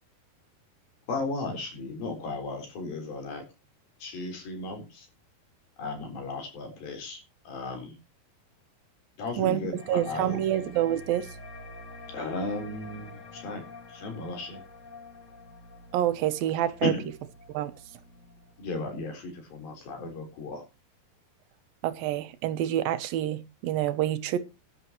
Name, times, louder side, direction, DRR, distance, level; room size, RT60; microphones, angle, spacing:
voice 1, 1.1-3.4 4.0-5.1 5.8-8.0 9.2-10.7 12.1-13.6 13.9-14.6 16.8-17.1 18.6-20.6, left 2 dB, 60° left, 5.7 m, -35 dB
sound 1, 9.8-18.8, left 2 dB, 35° left, 1.3 m, -47 dB
voice 2, 9.9-11.3 15.9-16.9 17.5-17.7 21.8-24.4, right 12 dB, 70° right, 2.4 m, -27 dB
17.0 x 11.0 x 3.0 m
omnidirectional pair, 4.7 m